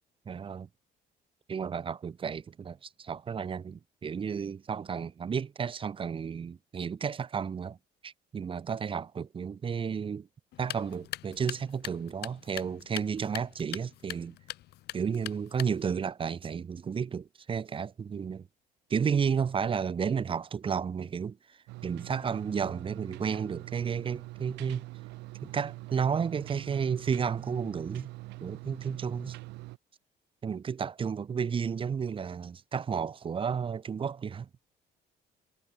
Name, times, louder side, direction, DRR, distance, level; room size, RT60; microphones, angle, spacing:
voice 1, 0.3-0.7 1.5-7.8 8.0-10.3 10.6-14.4 14.9-18.5 18.9-24.8 25.4-28.1 28.4-29.4 30.4-34.5, right 6 dB, 30° right, 0.9 m, -32 dB
sound 1, 10.5-16.0, left 16 dB, 75° left, 2.0 m, -43 dB
sound 2, 21.7-29.8, right 21 dB, 90° right, 0.8 m, -44 dB
cardioid pair, 110°, 17 cm